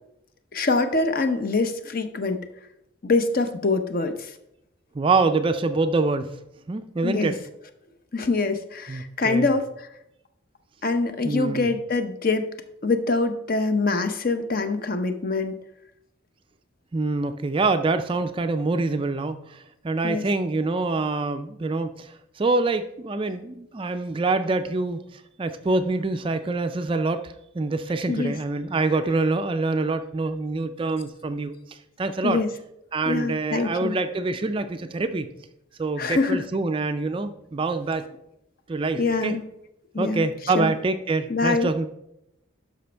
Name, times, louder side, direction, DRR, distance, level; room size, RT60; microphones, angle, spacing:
voice 1, 0.5-2.5 3.0-4.3 7.0-7.3 8.1-9.9 10.8-12.5 12.8-15.6 20.0-20.2 28.1-28.4 32.2-32.5 33.1-34.0 36.0-36.4 39.0-39.4 39.9-40.3 40.5-40.7 41.3-41.7, left 3 dB, 45° left, 8 dB, 0.7 m, -24 dB
voice 2, 4.9-6.3 6.7-7.4 8.9-9.5 11.2-11.7 16.9-32.4 32.9-35.3 35.8-38.1 38.7-39.3 40.0-41.9, right 3 dB, 25° right, 9 dB, 0.3 m, -25 dB
12.0 x 5.1 x 3.4 m, 0.82 s
head